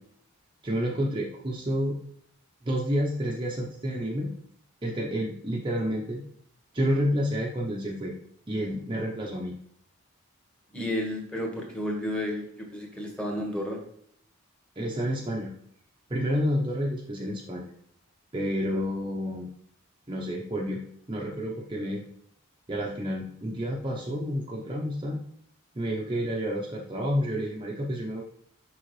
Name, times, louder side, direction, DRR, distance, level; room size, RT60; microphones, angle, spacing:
voice 1, 0.6-2.0 2.6-4.3 4.8-6.2 6.7-8.1 8.5-9.5 14.8-15.5 16.1-17.6 18.3-19.5 20.1-20.8 21.1-22.0 22.7-25.2 25.7-28.2, equal, 25° right, -2 dB, 0.8 m, -29 dB
voice 2, 10.7-13.8, left 1 dB, 5° left, 0 dB, 1.5 m, -32 dB
6.5 x 5.6 x 3.2 m, 0.67 s
head